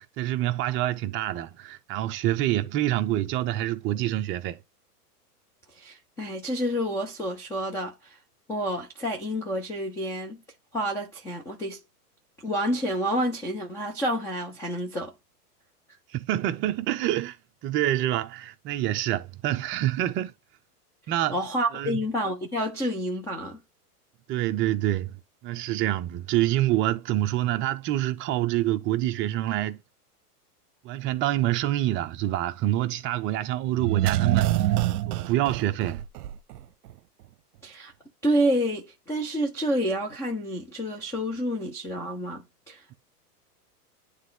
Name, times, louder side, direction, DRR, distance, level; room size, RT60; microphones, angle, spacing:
voice 1, 0.0-4.6 16.1-17.4 17.6-20.3 21.1-21.4 21.7-22.0 24.3-25.1 25.4-29.8 30.8-34.7 35.0-36.0, right 14 dB, 25° right, 0.7 m, -26 dB
voice 2, 5.8-8.2 8.5-10.4 10.7-11.8 12.4-15.1 21.3-23.6 37.6-37.9 38.2-42.9, equal, 5° left, 0.3 m, -29 dB
sound 1, 33.8-36.6 36.9-37.0, right 14 dB, 70° right, 0.8 m, -25 dB
9.7 x 3.4 x 3.8 m
hypercardioid pair, 135°, 47 cm